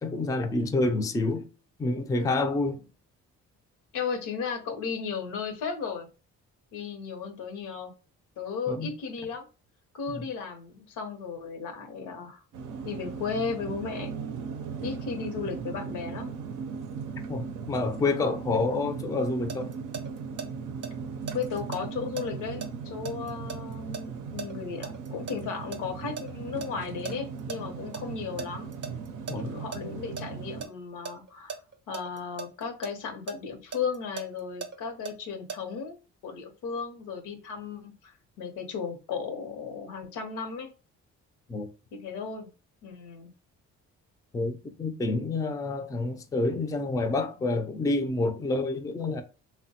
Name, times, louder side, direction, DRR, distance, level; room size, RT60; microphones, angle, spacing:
voice 1, 0.0-1.5 1.8-2.8 8.7-8.9 10.1-10.2 17.3-19.7 29.3-29.5 41.5-41.7 44.3-49.2, left 2 dB, 10° left, 0.3 m, -28 dB
voice 2, 3.9-6.1 6.7-7.9 8.4-9.4 9.9-12.4 12.8-14.2 14.8-16.3 21.3-28.7 29.3-31.6 31.9-40.7 42.0-42.5 42.8-43.3, left 5 dB, 85° left, 0.8 m, -35 dB
sound 1, 12.5-30.6, right 6 dB, 85° right, 0.5 m, -38 dB
sound 2, 19.1-20.5 20.8-25.4 25.7-27.6 27.9-28.0 28.4-29.8 30.2-30.7 31.1-32.9 33.3-35.6, right 5 dB, 40° right, 0.5 m, -38 dB
3.1 x 2.1 x 2.7 m
cardioid pair, 90°, 30 cm